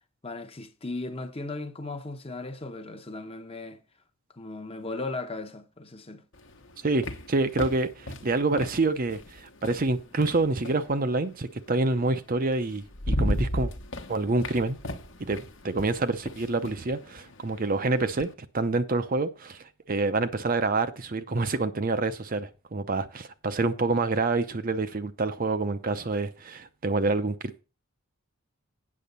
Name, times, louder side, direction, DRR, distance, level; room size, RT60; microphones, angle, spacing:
voice 1, 0.2-3.8 4.3-6.2, left 2 dB, 25° left, 0.9 m, -37 dB
sound 1, 6.3-10.9 12.2-12.3 12.7-18.3, left 1 dB, 60° left, 1.1 m, -35 dB
voice 2, 6.8-13.7 14.1-14.8 15.2-18.3 18.5-27.4, right 3 dB, 40° right, 0.6 m, -27 dB
8.6 x 6.9 x 5.4 m
head